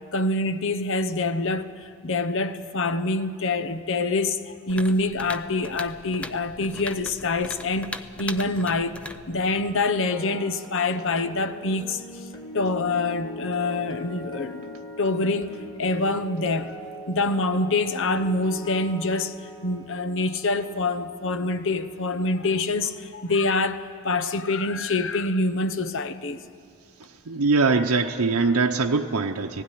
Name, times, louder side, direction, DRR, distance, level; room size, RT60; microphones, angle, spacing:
voice 1, 0.1-1.7 2.0-9.0 9.3-12.0 12.5-16.8 17.1-19.3 19.6-26.4 28.2-28.3, left 2 dB, 60° left, 0.9 m, -26 dB
sound 1, 4.7-9.9, left 1 dB, 5° left, 0.6 m, -39 dB
sound 2, 9.2-23.3 23.6-23.9, equal, 25° left, 3.7 m, -42 dB
voice 2, 27.0-29.6, right 4 dB, 85° right, 0.8 m, -22 dB
17.0 x 16.0 x 9.9 m
head